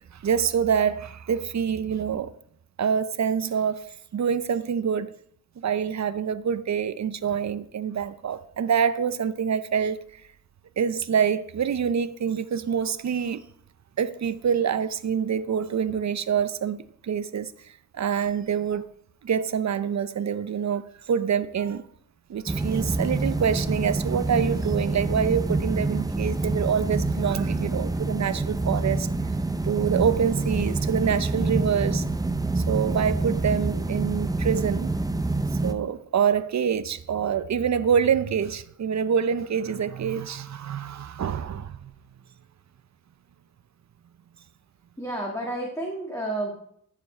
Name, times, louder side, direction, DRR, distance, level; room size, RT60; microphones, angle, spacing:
voice 1, 0.1-2.3 2.8-5.1 5.6-10.0 10.8-13.4 14.0-18.9 19.2-21.9 22.3-29.1 29.6-32.1 32.6-34.9 35.5-41.9, right 7 dB, 50° right, 0.7 m, -26 dB
sound 1, 22.5-35.7, right 2 dB, 10° right, 0.6 m, -27 dB
voice 2, 45.0-46.5, right 1 dB, 10° left, 1.8 m, -30 dB
11.0 x 7.1 x 4.4 m
cardioid pair, 90°, 35 cm